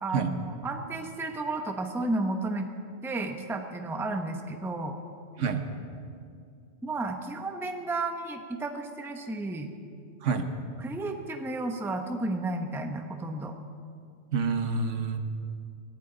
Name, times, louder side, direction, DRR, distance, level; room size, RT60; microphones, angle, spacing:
voice 1, 0.0-2.7 3.0-4.9 6.8-9.7 10.8-13.5, right 2 dB, ahead, 5 dB, 0.7 m, -32 dB
voice 2, 14.3-15.2, right 5 dB, 75° right, 7 dB, 1.3 m, -27 dB
21.5 x 15.0 x 3.9 m, 2.4 s
omnidirectional pair, 1.3 m